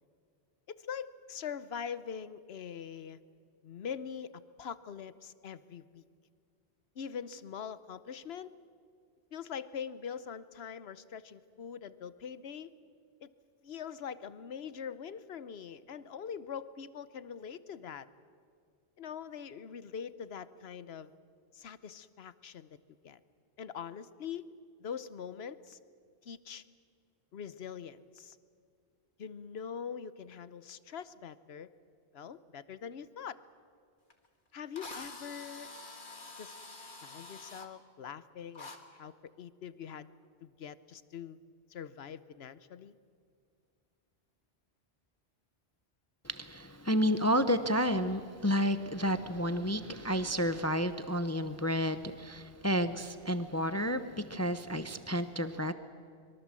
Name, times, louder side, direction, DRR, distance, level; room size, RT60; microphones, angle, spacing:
voice 1, 0.7-3.2 3.6-6.0 6.9-8.5 9.3-12.7 13.2-13.3 13.6-18.1 19.0-21.1 21.5-22.8 23.0-23.2 23.6-24.5 24.8-25.8 26.2-26.6 27.3-28.4 29.2-31.7 32.1-33.4 34.5-35.7 36.4-36.5 37.0-40.1 40.4-41.4 41.7-43.0, left 7 dB, 70° left, 15 dB, 1.1 m, -43 dB
Drill, 34.1-34.2 34.8-37.7 38.6-38.8, left 3 dB, 50° left, 2.0 m, -47 dB
voice 2, 46.2-55.7, equal, 15° left, 10 dB, 0.7 m, -31 dB
25.0 x 23.0 x 7.5 m, 2.2 s
omnidirectional pair, 1.1 m